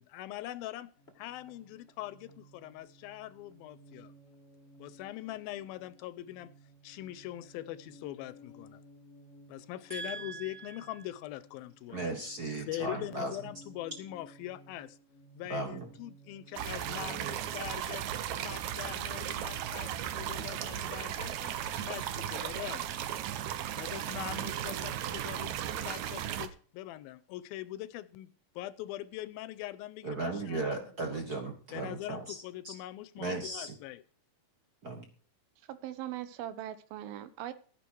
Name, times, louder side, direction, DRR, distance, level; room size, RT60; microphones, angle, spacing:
voice 1, 0.0-4.1 4.8-6.5 6.8-8.8 9.5-12.0 12.7-15.0 15.3-18.1 18.4-21.6 21.8-23.0 23.8-25.5 25.8-28.3 28.6-31.2 31.7-34.0, left 14 dB, 85° left, 2.5 m, -42 dB
sound 1, 1.0-17.7, right 1 dB, 30° left, 1.1 m, -58 dB
voice 2, 9.9-10.8 11.9-13.4 15.5-15.9 30.0-32.7 33.2-33.8 34.8-35.0, right 2 dB, 50° right, 1.2 m, -37 dB
sound 2, 16.6-26.5, right 10 dB, 70° right, 1.9 m, -36 dB
voice 3, 35.7-37.5, right 12 dB, 85° right, 2.9 m, -40 dB
13.5 x 10.0 x 4.7 m
omnidirectional pair, 4.2 m